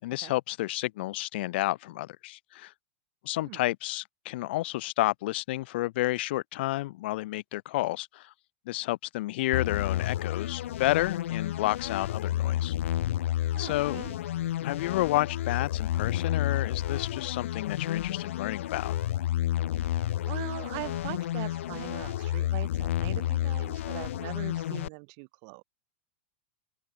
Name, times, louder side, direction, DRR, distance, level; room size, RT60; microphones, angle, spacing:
voice 1, 0.0-2.7 3.2-8.3 8.7-12.7 13.6-14.0 14.6-18.9, left 18 dB, 55° left, 3.1 m, -30 dB
sound 1, 9.5-24.9, left 12 dB, 85° left, 0.6 m, -30 dB
voice 2, 13.5-14.2 19.7-25.6, right 40 dB or more, 40° right, 3.6 m, -41 dB
open air
supercardioid pair, 165°, 7 cm